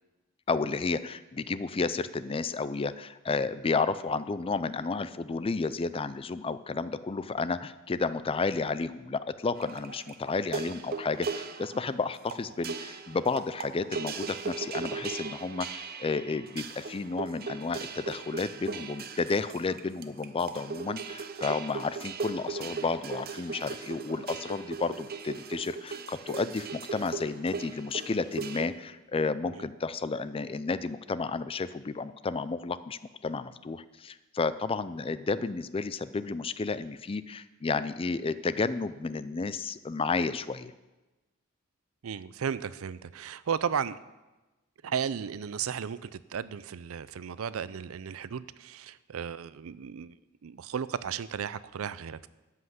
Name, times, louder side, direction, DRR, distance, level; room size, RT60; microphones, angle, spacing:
voice 1, 0.5-40.7, left 4 dB, 25° left, 15 dB, 0.4 m, -32 dB
sound 1, 9.6-28.7, right 5 dB, 45° right, 0.7 m, -38 dB
voice 2, 42.0-44.0 44.8-50.2 50.4-52.3, right 7 dB, 80° right, 17 dB, 0.5 m, -34 dB
13.0 x 5.7 x 8.0 m, 1.1 s
head